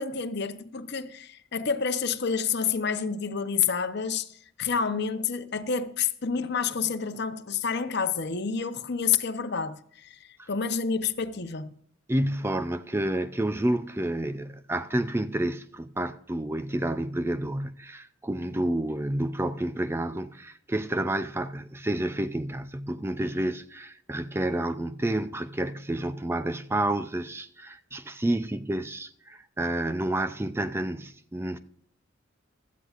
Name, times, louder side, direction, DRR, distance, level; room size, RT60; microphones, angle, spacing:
voice 1, 0.0-10.2 10.5-11.7, left 6 dB, 55° left, 0.8 m, -29 dB
voice 2, 12.1-31.6, right 1 dB, 10° right, 0.4 m, -29 dB
16.0 x 13.0 x 2.5 m
head